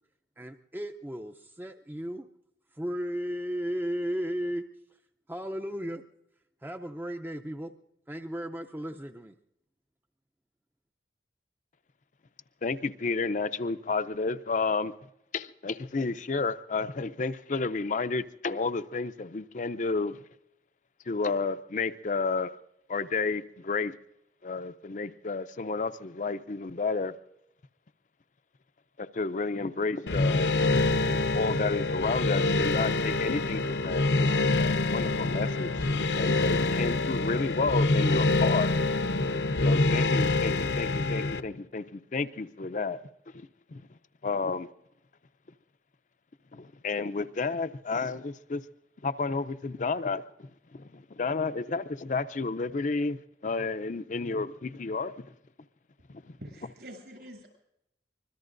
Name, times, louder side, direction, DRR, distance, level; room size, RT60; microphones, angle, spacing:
voice 1, 0.4-2.3 2.8-4.6 5.3-6.0 6.6-7.7 8.1-9.3, equal, 10° right, 0.5 m, -35 dB
voice 2, 12.6-14.9 15.3-20.2 21.1-22.5 22.9-23.9 24.4-27.1 29.0-30.9 31.3-35.9 36.1-38.7 39.6-43.0 43.3-43.8 44.2-44.7 46.5-48.6 49.0-50.2 50.7-55.3 56.1-56.4, left 4 dB, 45° left, 0.5 m, -31 dB
sound 1, 30.1-41.4, left 2 dB, 75° left, 0.8 m, -26 dB
voice 3, 56.4-57.5, equal, 70° right, 7.6 m, -46 dB
24.5 x 21.5 x 2.6 m
head